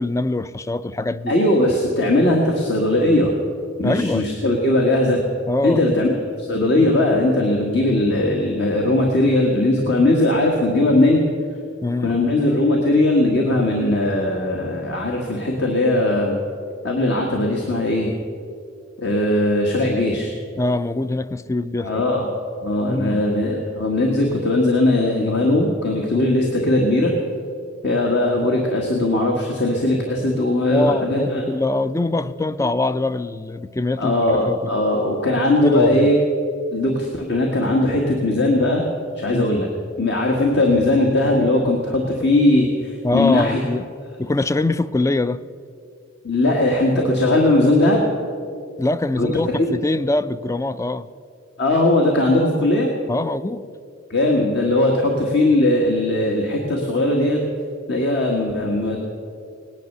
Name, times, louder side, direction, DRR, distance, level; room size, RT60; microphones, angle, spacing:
voice 1, 0.0-1.3 3.8-4.3 5.5-5.8 11.8-12.1 20.6-22.1 22.9-23.4 30.7-34.7 35.6-36.1 39.3-39.5 43.0-43.9 44.2-45.4 48.8-51.1 53.1-53.6, left 2 dB, 15° left, 15 dB, 0.4 m, -23 dB
voice 2, 1.3-3.3 3.8-5.2 5.6-6.1 6.4-11.2 12.0-16.3 16.8-18.1 19.0-20.3 21.8-22.3 22.6-27.1 27.8-31.4 32.6-32.7 34.0-36.1 36.7-38.8 39.1-39.7 40.0-43.6 46.2-48.0 49.2-49.3 49.6-49.7 51.6-52.9 54.1-57.4 57.9-59.0, left 1 dB, 60° left, 0 dB, 1.7 m, -19 dB
18.0 x 10.5 x 6.7 m, 2.4 s
head